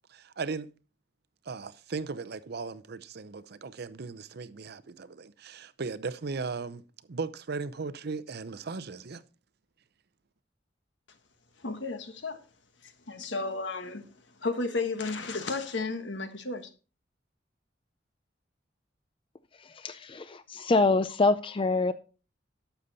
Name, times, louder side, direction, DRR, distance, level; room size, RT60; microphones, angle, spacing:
voice 1, 0.1-0.7 1.5-6.8 7.1-9.2, right 4 dB, 60° right, 0.6 m, -37 dB
voice 2, 11.6-12.4 12.8-14.1 14.4-16.7, left 3 dB, 70° left, 1.4 m, -33 dB
voice 3, 19.6-21.9, left 3 dB, 30° left, 0.4 m, -26 dB
11.5 x 7.0 x 4.0 m
head